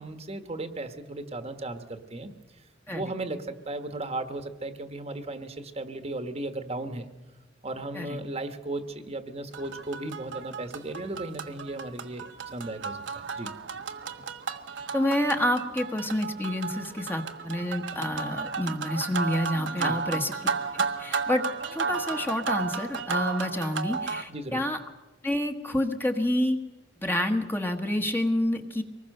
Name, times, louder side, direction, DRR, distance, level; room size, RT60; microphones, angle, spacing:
voice 1, 0.0-2.3 2.9-7.1 7.6-12.2 12.5-13.0 13.4-13.5 19.8-20.0 24.3-24.6, right 2 dB, 35° right, 8 dB, 1.4 m, -35 dB
sound 1, 9.5-24.2, right 5 dB, 70° right, 1.3 m, -33 dB
voice 2, 14.9-21.5 21.7-24.8 25.2-26.6 27.0-28.8, left 1 dB, 10° left, 4 dB, 1.3 m, -28 dB
24.5 x 20.0 x 6.6 m, 1.1 s
head